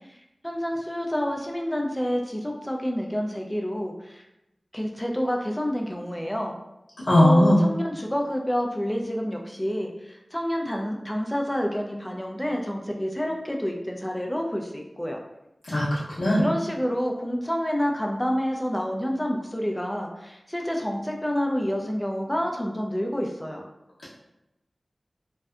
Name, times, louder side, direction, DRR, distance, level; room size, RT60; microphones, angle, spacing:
voice 1, 0.4-4.2 4.7-6.5 7.2-15.2 16.4-23.6, equal, 15° left, 1 dB, 0.4 m, -28 dB
voice 2, 7.1-7.6 15.6-16.4, left 1 dB, 65° left, -9 dB, 0.7 m, -19 dB
2.6 x 2.1 x 2.4 m, 0.90 s
wide cardioid pair, 50°, 0 cm